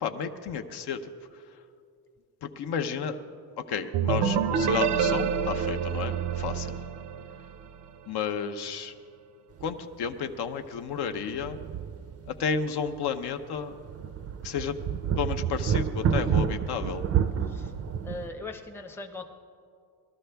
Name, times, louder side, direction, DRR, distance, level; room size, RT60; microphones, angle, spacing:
voice 1, 0.0-1.0 2.4-3.2 3.6-6.8 8.1-8.9 9.6-11.6 12.3-13.7 14.4-14.8 15.2-17.1, left 7 dB, 65° left, 7 dB, 0.8 m, -32 dB
sound 1, 3.9-7.6, right 7 dB, 80° right, 0.7 m, -27 dB
sound 2, 9.6-9.8 10.1-10.2 11.1-12.6 12.9-13.0 13.6-18.3, right 8 dB, 35° right, 0.5 m, -29 dB
voice 2, 18.0-19.2, left 3 dB, 5° left, 3 dB, 0.6 m, -39 dB
20.0 x 13.0 x 3.4 m, 2.4 s
cardioid pair, 150°, 42 cm